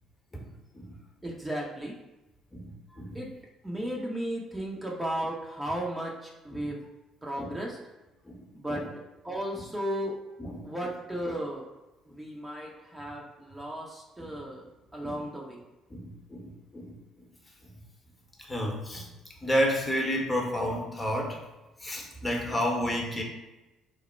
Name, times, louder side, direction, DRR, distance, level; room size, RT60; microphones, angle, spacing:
voice 1, 1.2-2.0 3.1-3.3 3.6-6.8 7.2-7.8 8.5-8.9 9.2-10.2 10.6-11.7 12.1-14.6 14.9-15.6, right 1 dB, 10° right, -2 dB, 0.6 m, -35 dB
voice 2, 2.5-3.2 6.5-6.7 7.4-7.6 8.3-8.4 8.7-8.9 10.4-10.7 14.2-14.3 15.0-15.2 15.9-17.0 18.4-19.1 19.4-21.4 21.8-23.2, equal, 20° left, 0 dB, 0.8 m, -31 dB
3.1 x 2.1 x 4.2 m, 1.0 s
figure-of-eight pair, 50°, 0 cm